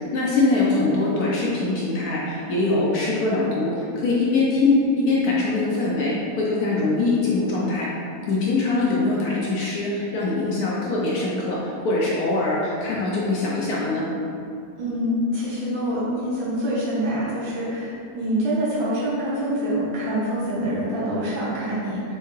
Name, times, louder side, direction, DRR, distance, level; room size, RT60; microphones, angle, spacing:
voice 1, 0.1-7.9 8.3-14.1, left 3 dB, 65° left, -5 dB, 1.0 m, -22 dB
voice 2, 14.8-22.0, equal, 85° right, -8 dB, 2.0 m, -25 dB
4.5 x 3.3 x 3.1 m, 2.5 s
omnidirectional pair, 2.1 m